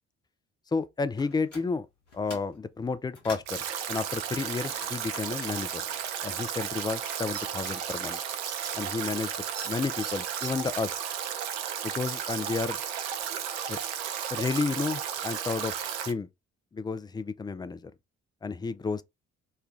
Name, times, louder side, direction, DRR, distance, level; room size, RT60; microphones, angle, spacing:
voice 1, 0.7-1.9 2.1-5.8 6.2-8.2 8.7-9.3 9.6-11.0 11.8-12.8 13.7-13.8 14.3-15.7 16.1-16.3 16.7-17.9 18.4-19.0, left 4 dB, 10° left, 0.4 m, -31 dB
sound 1, 1.2-1.7 2.1-2.6 2.9-3.6 4.1-7.1 7.3-8.5, left 3 dB, 90° left, 0.9 m, -47 dB
Stream / Drip / Trickle dribble, 3.5-16.1, right 9 dB, 70° right, 0.6 m, -34 dB
sound 2, 7.3-7.4 8.5-8.7 9.6-9.7 10.0-10.5, right 5 dB, 45° right, 0.9 m, -40 dB
3.2 x 2.3 x 3.6 m
figure-of-eight pair, 40°, 36 cm